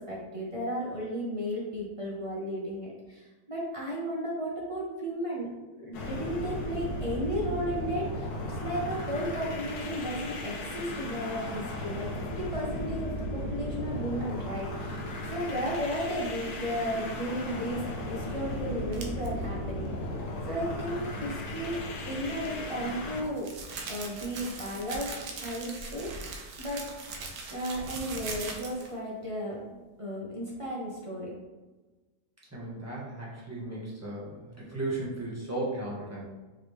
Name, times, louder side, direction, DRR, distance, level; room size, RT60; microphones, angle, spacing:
voice 1, 0.0-5.5 5.8-12.1 12.4-15.0 15.3-17.8 18.0-19.9 20.5-21.8 22.1-23.5 23.9-25.1 25.4-26.1 26.6-26.9 27.5-29.6 30.0-31.3, equal, 40° right, -4 dB, 0.4 m, -34 dB
sound 1, 5.9-23.3, left 1 dB, 70° left, 1.2 m, -36 dB
sound 2, 18.9-19.3 22.4-29.0, right 3 dB, 80° right, 1.3 m, -40 dB
voice 2, 32.5-36.2, right 2 dB, 10° right, -6 dB, 0.8 m, -35 dB
4.9 x 3.3 x 3.1 m, 1.2 s
omnidirectional pair, 1.8 m